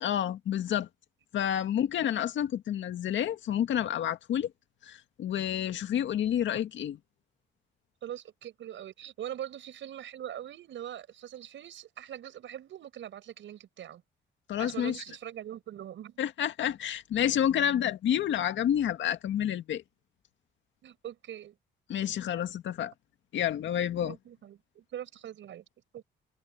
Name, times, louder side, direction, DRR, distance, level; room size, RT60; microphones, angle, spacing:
voice 1, 0.0-0.9 1.3-4.5 4.8-7.0 14.5-14.9 16.2-19.8 21.9-22.9 23.3-24.2, left 10 dB, 70° left, 1.9 m, -29 dB
voice 2, 8.0-14.0 14.6-16.2 20.8-21.5 24.0-25.6 25.9-26.0, right 11 dB, 70° right, 6.6 m, -42 dB
cardioid pair, 90°, 20 cm